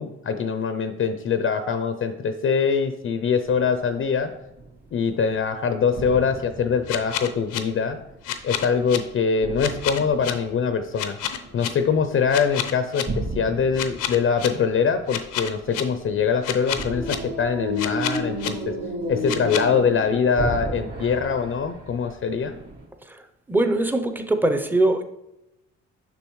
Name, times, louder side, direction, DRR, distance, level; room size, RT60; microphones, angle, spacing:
voice 1, 0.0-4.3 4.9-8.0 8.4-11.2 11.5-18.7 19.1-22.6, left 6 dB, 45° left, 9 dB, 0.5 m, -23 dB
sound 1, 3.4-3.9 4.3-5.4 5.9-8.2 8.8-10.8 11.2-11.9 12.3-12.7 13.1-22.9, right 1 dB, 55° right, 2.6 m, -33 dB
sound 2, 6.9-7.6 8.2-9.0 9.6-10.3 11.0-11.7 12.3-13.0 13.7-14.5 15.1-15.8 16.4-17.2 17.8-18.5 19.3-19.6, left 11 dB, 85° left, 0.7 m, -28 dB
voice 2, 23.5-25.0, right 2 dB, 5° right, 7 dB, 0.6 m, -22 dB
6.8 x 5.9 x 3.1 m, 0.91 s
cardioid pair, 90°, 30 cm